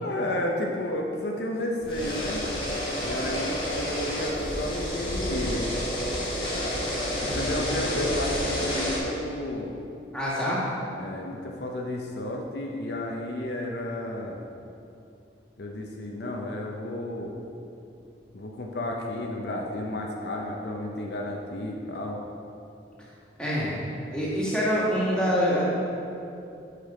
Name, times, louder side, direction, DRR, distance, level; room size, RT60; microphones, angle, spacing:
voice 1, 0.0-2.4 3.0-5.8 7.2-9.7 10.5-10.6 11.0-14.4 15.6-17.4 18.3-22.2, left 1 dB, 65° left, 0 dB, 0.7 m, -32 dB
sound 1, 1.8-9.0, equal, 30° left, 1.7 m, -29 dB
voice 2, 7.2-7.8 10.1-10.6 23.4-23.8 24.1-25.6, equal, 5° left, -8 dB, 1.7 m, -26 dB
6.5 x 6.1 x 4.9 m, 2.7 s
head